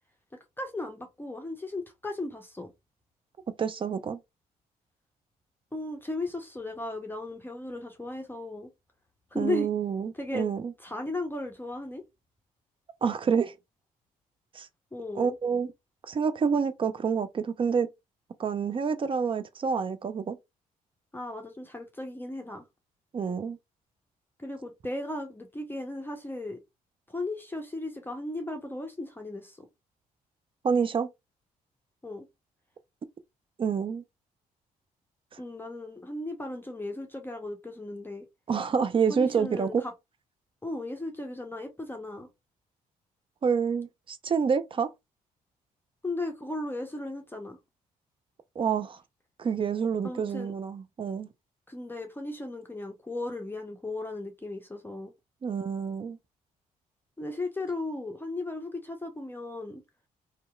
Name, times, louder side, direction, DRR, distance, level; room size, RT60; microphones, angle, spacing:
voice 1, 0.3-2.7 5.7-8.7 9.3-9.7 10.1-10.5 10.8-12.0 14.9-15.4 21.1-22.6 24.4-26.6 27.1-29.7 32.0-32.3 35.4-38.2 39.1-39.9 40.6-42.3 46.0-47.6 50.0-50.5 51.7-55.1 57.2-59.8, left 2 dB, 10° left, 0.6 m, -36 dB
voice 2, 3.6-4.2 9.3-10.7 13.0-13.5 14.5-14.7 15.2-15.7 16.1-17.9 18.4-20.4 23.1-23.6 30.6-31.1 33.6-34.0 38.5-39.8 43.4-44.9 48.6-49.0 49.4-51.3 55.4-56.2, right 6 dB, 30° right, 0.4 m, -28 dB
2.8 x 2.2 x 2.2 m
figure-of-eight pair, 45°, 19 cm